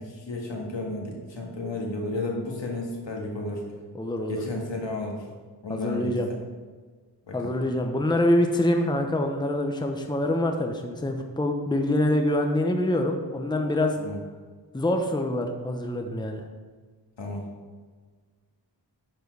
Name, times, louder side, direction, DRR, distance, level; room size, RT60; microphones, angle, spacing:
voice 1, 0.0-3.6 4.3-5.2 5.6-6.1 7.3-7.6 14.0-14.2 17.2-17.5, left 2 dB, 75° left, -1 dB, 1.9 m, -32 dB
voice 2, 3.9-4.4 5.7-6.3 7.3-14.0 14.7-16.5, left 1 dB, 10° left, 4 dB, 0.8 m, -25 dB
10.5 x 4.5 x 4.7 m, 1.5 s
wide cardioid pair, 80°, 44 cm